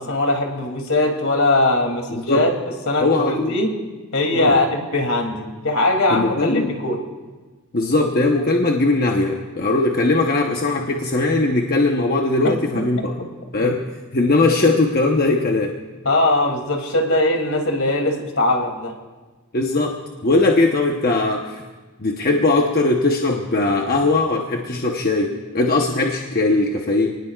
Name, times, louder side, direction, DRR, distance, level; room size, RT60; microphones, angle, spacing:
voice 1, 0.0-2.6 2.9-3.7 4.1-7.0 12.4-12.8 13.2-13.3 13.6-13.7 16.0-18.9, left 2 dB, 70° left, 2 dB, 2.8 m, -20 dB
voice 2, 2.1-2.4 3.0-3.5 4.4-4.6 6.1-6.7 7.7-13.1 13.5-13.8 14.1-15.8 19.5-21.6 22.0-27.2, left 2 dB, 45° left, 1 dB, 1.0 m, -19 dB
28.5 x 19.5 x 2.4 m, 1.3 s
head